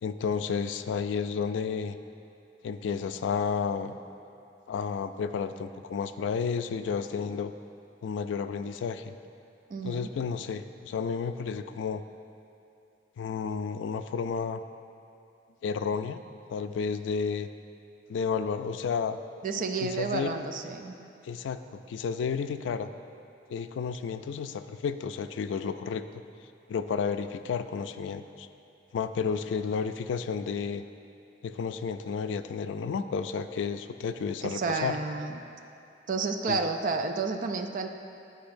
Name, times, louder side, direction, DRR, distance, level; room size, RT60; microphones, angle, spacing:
voice 1, 0.0-2.0 2.6-3.9 4.7-7.5 8.0-9.1 9.8-12.0 13.2-14.6 15.6-16.2 16.5-17.5 18.1-19.2 19.8-20.4 21.2-21.6 21.9-22.9 23.5-26.0 26.7-28.5 28.9-30.8 31.4-35.0 36.5-36.6, left 6 dB, 90° left, 10 dB, 0.3 m, -31 dB
voice 2, 9.7-10.1 19.4-20.9 34.4-35.4 36.1-37.9, right 4 dB, 45° right, 6 dB, 0.4 m, -31 dB
10.5 x 5.1 x 2.6 m, 2.6 s
head